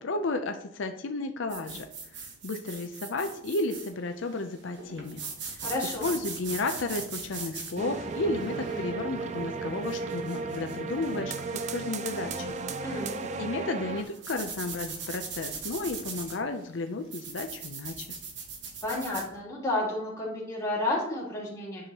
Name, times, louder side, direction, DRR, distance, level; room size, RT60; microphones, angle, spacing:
voice 1, 0.0-1.9 2.1-5.2 5.5-5.6 6.0-12.6 13.4-18.1, left 2 dB, 75° left, 6 dB, 0.6 m, -33 dB
sound 1, 1.5-19.3, right 5 dB, 65° right, 1.2 m, -41 dB
voice 2, 5.6-6.1 12.8-13.2 18.8-21.9, left 2 dB, 15° left, -6 dB, 3.0 m, -31 dB
sound 2, 7.8-14.0, right 4 dB, 35° right, 0.4 m, -34 dB
11.0 x 6.2 x 2.9 m, 0.76 s
head